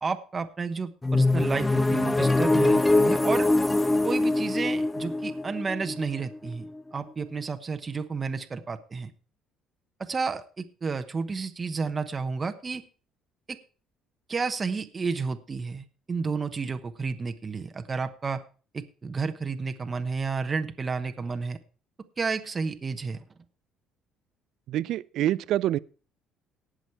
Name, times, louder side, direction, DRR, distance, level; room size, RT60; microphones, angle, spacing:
voice 1, 0.0-3.5 4.0-6.6 6.9-9.1 10.0-12.8 13.5-13.6 14.3-18.4 18.7-21.6 22.2-23.2, right 4 dB, 30° right, 1.1 m, -31 dB
sound 1, 1.0-6.8, left 2 dB, 10° left, 0.5 m, -23 dB
voice 2, 24.7-25.8, right 13 dB, 70° right, 0.4 m, -26 dB
18.5 x 6.3 x 4.6 m
cardioid pair, 110°, 0 cm